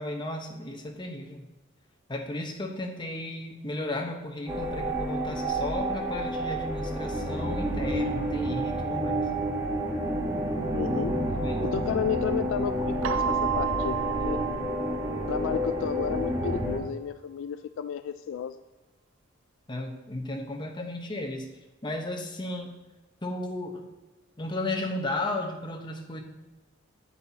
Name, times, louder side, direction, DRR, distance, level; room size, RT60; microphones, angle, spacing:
voice 1, 0.0-1.4 2.1-9.3 11.4-11.6 19.7-21.4 21.8-22.7 23.2-23.8 24.4-26.2, left 2 dB, 25° left, 1 dB, 1.0 m, -34 dB
sound 1, 4.5-16.8, right 1 dB, 15° right, 1.2 m, -29 dB
voice 2, 10.7-11.2 11.6-14.0 14.2-14.4 15.3-18.6, left 7 dB, 70° left, 11 dB, 0.3 m, -32 dB
Keyboard (musical), 13.0-15.8, right 9 dB, 75° right, 0.3 m, -32 dB
8.8 x 8.6 x 2.8 m, 1.1 s
head